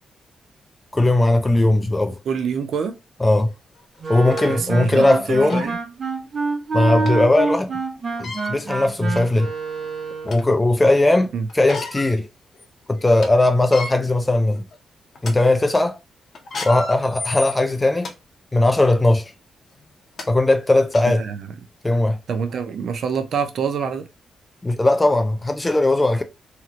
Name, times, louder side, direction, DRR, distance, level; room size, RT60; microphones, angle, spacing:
voice 1, 0.9-2.2 3.2-3.5 4.1-5.7 6.7-7.7 8.2-9.5 10.2-12.3 12.9-14.6 15.2-16.0 16.6-18.1 18.5-19.3 20.3-21.2 21.8-22.2 24.6-26.2, left 2 dB, 15° left, 0.4 m, -18 dB
voice 2, 2.3-3.0 4.5-5.8 11.3-11.5 21.1-21.5 22.3-24.1, right 6 dB, 65° right, 0.5 m, -26 dB
sound 1, 3.3-3.4 4.1-4.5 5.1-5.2 5.5-5.7 7.1-7.2 8.1-8.5 9.3-9.4 9.8-10.5 11.5-12.1 12.5-12.6 13.0-13.3 13.6-13.9 14.6-14.8 15.2-15.3 16.4-18.1 18.8-18.9 19.8-19.9 20.2-20.3 20.9-21.0, left 3 dB, 50° left, 0.7 m, -32 dB
Wind instrument woodwind instrument, 4.0-10.4, right 4 dB, 40° right, 0.8 m, -27 dB
2.9 x 2.5 x 2.9 m
cardioid pair, 110°, 0 cm